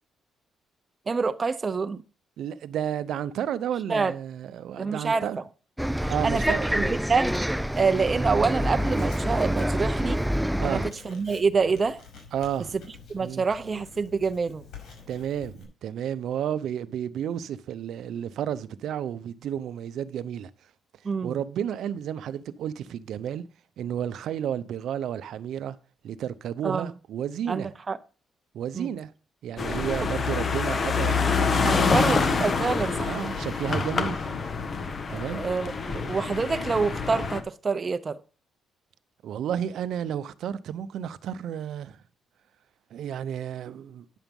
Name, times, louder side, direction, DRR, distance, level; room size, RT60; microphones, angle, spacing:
voice 1, 1.1-2.0 3.9-4.1 4.8-5.3 6.0-7.3 7.8-10.2 10.6-12.0 13.1-14.6 21.0-21.4 26.6-26.9 27.5-28.0 28.7-28.9 30.0-30.1 31.6-33.2 35.1-38.2, right 4 dB, 35° right, 0.7 m, -27 dB
voice 2, 2.4-5.4 6.0-6.8 10.6-10.9 12.3-12.7 13.2-13.5 15.1-20.5 21.2-23.4 23.8-25.8 26.0-27.7 28.5-29.1 29.4-32.2 33.0-34.4 35.1-35.5 39.2-42.0 42.9-44.1, right 9 dB, 75° right, 0.8 m, -32 dB
Bus, 5.8-10.9, equal, 5° right, 0.4 m, -26 dB
Writing, 7.8-15.6, left 5 dB, 70° left, 6.0 m, -48 dB
sound 1, 29.6-37.4, left 5 dB, 40° left, 1.4 m, -26 dB
10.0 x 7.2 x 5.4 m
cardioid pair, 90°, 0 cm